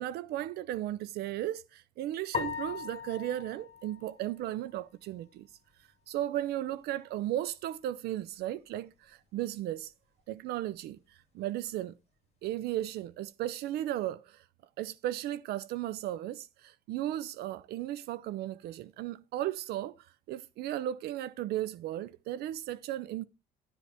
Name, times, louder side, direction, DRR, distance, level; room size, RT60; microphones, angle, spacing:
voice 1, 0.0-5.5 5.8-9.9 10.3-11.9 12.4-14.5 14.8-23.3, right 13 dB, 70° right, 0.4 m, -35 dB
sound 1, 2.3-4.8, left 7 dB, 40° left, 1.7 m, -39 dB
11.5 x 9.9 x 3.4 m
cardioid pair, 110°, 17 cm